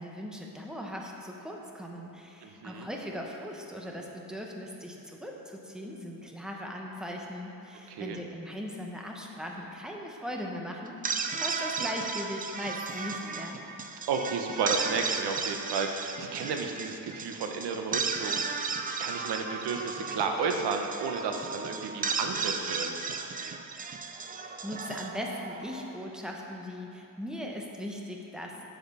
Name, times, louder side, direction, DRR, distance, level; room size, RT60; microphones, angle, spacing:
voice 1, 0.0-13.6 24.2-28.6, equal, ahead, 0 dB, 0.9 m, -39 dB
voice 2, 2.4-2.9 7.9-8.2 14.1-22.9, right 5 dB, 80° right, 4 dB, 1.1 m, -32 dB
sound 1, 10.9-26.1, right 5 dB, 20° right, 0.4 m, -35 dB
8.4 x 7.8 x 5.6 m, 3.0 s
cardioid pair, 160°, 40 cm